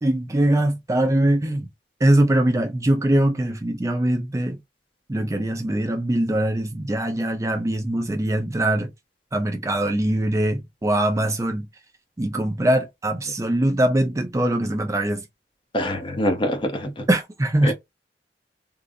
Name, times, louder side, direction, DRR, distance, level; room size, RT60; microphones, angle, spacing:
voice 1, 0.0-1.7 2.0-4.6 5.1-8.9 9.3-11.7 12.2-15.2 17.1-17.7, right 1 dB, 20° right, 0.4 m, -22 dB
voice 2, 15.7-17.1 17.6-17.7, left 1 dB, 30° left, 0.7 m, -24 dB
3.7 x 2.0 x 2.5 m
head